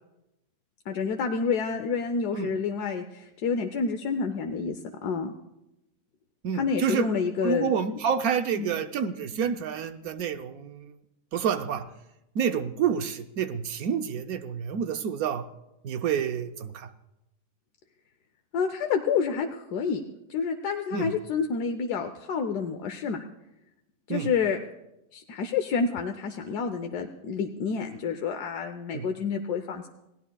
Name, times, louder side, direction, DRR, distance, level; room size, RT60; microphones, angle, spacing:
voice 1, 0.9-5.3 6.5-7.7 8.5-8.7 18.5-20.0 20.3-23.2 24.1-24.6 25.1-29.9, left 5 dB, 85° left, 6 dB, 1.3 m, -29 dB
voice 2, 6.4-7.1 7.4-10.9 11.3-11.9 12.3-15.5 15.8-16.9 20.9-21.1 24.1-24.3 28.9-29.1, right 7 dB, 70° right, 9 dB, 1.1 m, -28 dB
28.5 x 17.0 x 2.3 m, 0.94 s
omnidirectional pair, 1.7 m